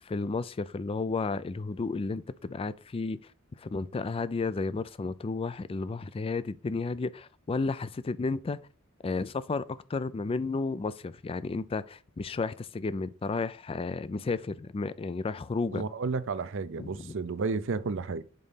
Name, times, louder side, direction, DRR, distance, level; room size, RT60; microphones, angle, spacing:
voice 1, 0.0-3.2 3.6-8.6 9.0-15.8 16.8-17.1, left 3 dB, 25° left, 0.3 m, -32 dB
voice 2, 15.7-18.2, right 4 dB, 65° right, 0.6 m, -32 dB
5.3 x 4.0 x 5.6 m
head